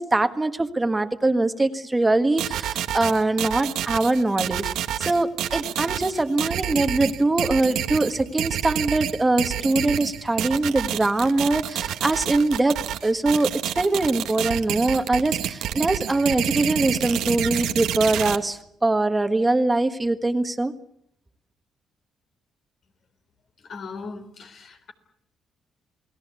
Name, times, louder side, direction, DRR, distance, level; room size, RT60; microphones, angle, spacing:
voice 1, 0.0-20.7, right 2 dB, 15° right, 1.6 m, -23 dB
sound 1, 2.4-18.4, right 11 dB, 85° right, 1.4 m, -28 dB
voice 2, 23.6-24.9, left 4 dB, 60° left, 3.8 m, -38 dB
28.5 x 19.0 x 8.3 m
cardioid pair, 90°, 0 cm